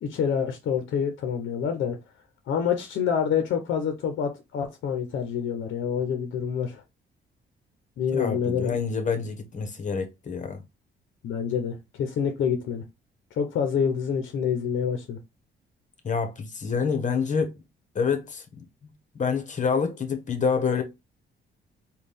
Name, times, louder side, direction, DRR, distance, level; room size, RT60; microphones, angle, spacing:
voice 1, 0.0-2.0 2.5-6.8 8.0-8.8 11.2-12.8 13.3-15.2, left 7 dB, 75° left, 0.7 m, -27 dB
voice 2, 8.1-10.6 16.0-17.6 17.9-20.8, left 5 dB, 40° left, 1.1 m, -27 dB
4.1 x 2.3 x 3.4 m
cardioid pair, 90°, 20 cm